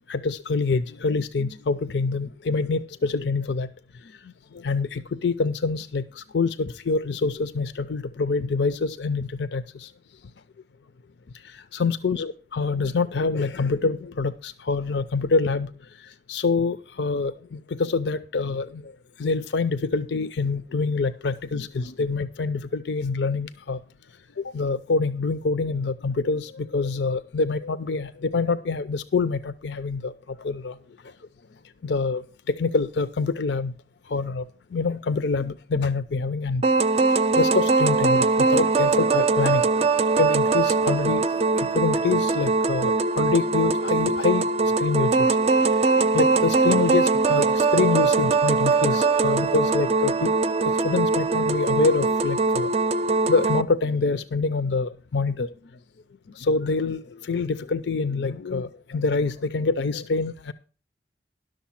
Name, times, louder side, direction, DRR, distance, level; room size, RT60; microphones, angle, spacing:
voice 1, 0.1-3.7 4.5-9.9 11.5-15.7 16.3-18.9 19.2-23.8 24.4-30.1 30.4-30.8 31.8-33.7 34.1-34.4 34.7-36.6 37.4-39.6 40.2-44.4 44.8-45.3 45.9-50.3 50.7-52.7 53.3-55.5 56.4-60.5, left 4 dB, 70° left, 14 dB, 0.5 m, -26 dB
sound 1, 36.6-53.6, right 3 dB, 35° right, 0.5 m, -21 dB
11.5 x 6.6 x 5.7 m, 0.37 s
head